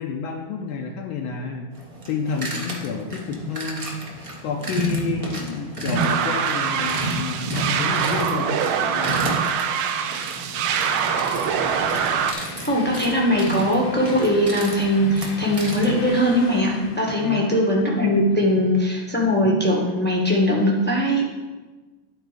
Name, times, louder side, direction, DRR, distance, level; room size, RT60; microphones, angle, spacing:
voice 1, 0.0-1.7 2.1-4.0 4.4-9.3 17.1-17.6 18.6-18.8, left 5 dB, 75° left, 1 dB, 1.4 m, -30 dB
sound 1, 1.7-16.1, right 2 dB, 35° right, 0.5 m, -32 dB
sound 2, 5.9-12.3, right 7 dB, 75° right, 1.4 m, -24 dB
Train, 8.9-18.3, left 4 dB, 60° left, 1.2 m, -39 dB
voice 2, 12.7-21.3, equal, 10° left, -3 dB, 0.6 m, -20 dB
11.0 x 4.1 x 4.9 m, 1.3 s
omnidirectional pair, 2.4 m